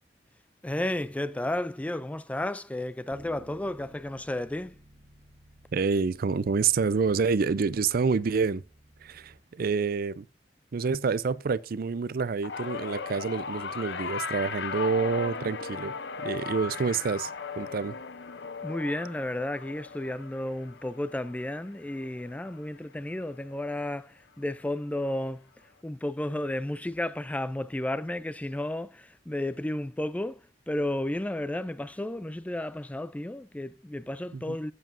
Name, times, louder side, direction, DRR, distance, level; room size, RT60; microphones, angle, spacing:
voice 1, 0.6-4.8 18.6-25.4 25.8-34.7, left 1 dB, 10° left, 0.3 m, -32 dB
Bass guitar, 3.1-9.4, right 1 dB, 30° right, 1.8 m, -56 dB
voice 2, 5.7-8.6 9.0-10.3 10.7-16.0 16.2-17.9 34.3-34.6, right 5 dB, 55° right, 0.4 m, -28 dB
sound 1, 12.4-22.9 23.2-23.6 24.7-24.8, left 5 dB, 70° left, 0.7 m, -37 dB
12.0 x 7.9 x 2.6 m
head